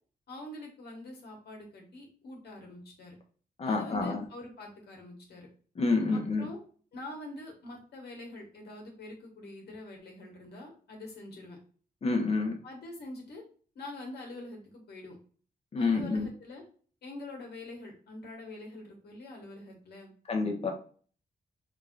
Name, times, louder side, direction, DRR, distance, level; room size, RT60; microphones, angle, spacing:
voice 1, 0.3-3.1 3.6-5.5 6.1-6.6 6.9-11.6 12.6-13.4 13.7-15.2 15.8-16.6 17.0-20.1, left 2 dB, 80° left, 1 dB, 1.5 m, -45 dB
voice 2, 3.6-4.2 5.8-6.5 12.0-12.6 15.7-16.3 20.3-20.7, left 3 dB, 40° left, 3 dB, 1.1 m, -28 dB
4.6 x 3.6 x 2.6 m, 0.43 s
wide cardioid pair, 145°, 16 cm